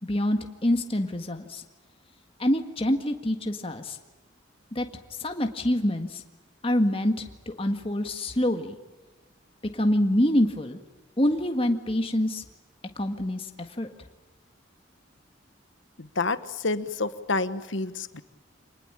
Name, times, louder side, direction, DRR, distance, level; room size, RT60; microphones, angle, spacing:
voice 1, 0.0-1.6 2.4-4.0 4.7-4.9 5.2-6.2 6.6-8.8 9.7-10.8 11.2-12.4 13.0-13.5 13.8-13.9, left 1 dB, 30° left, 5 dB, 1.7 m, -26 dB
voice 2, 16.0-18.2, left 3 dB, 75° left, 12 dB, 1.3 m, -29 dB
26.5 x 20.0 x 8.9 m, 1.2 s
head